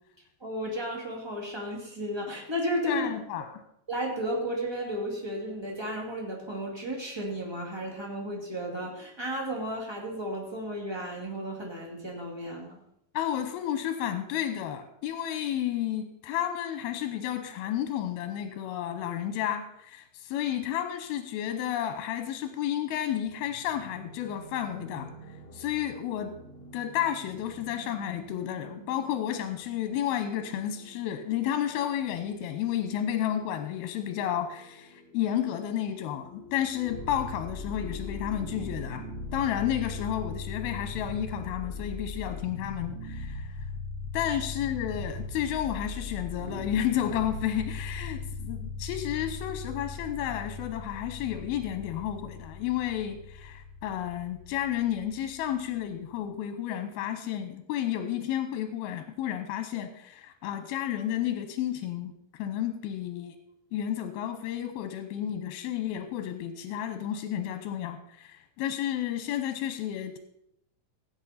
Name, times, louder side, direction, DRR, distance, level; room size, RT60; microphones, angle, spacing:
voice 1, 0.4-3.1 3.9-12.8 44.3-44.4, equal, 15° right, -1 dB, 1.0 m, -33 dB
voice 2, 2.9-3.6 13.1-25.1 25.5-26.4 26.7-39.0 39.3-43.5 44.1-62.1 62.4-63.4 63.7-70.2, left 10 dB, 85° left, 8 dB, 2.7 m, -31 dB
sound 1, 23.2-41.9, equal, 30° left, 2.6 m, -50 dB
sound 2, 36.8-55.9, left 3 dB, 85° right, 5.5 m, -39 dB
16.5 x 8.5 x 4.2 m, 0.76 s
omnidirectional pair, 4.3 m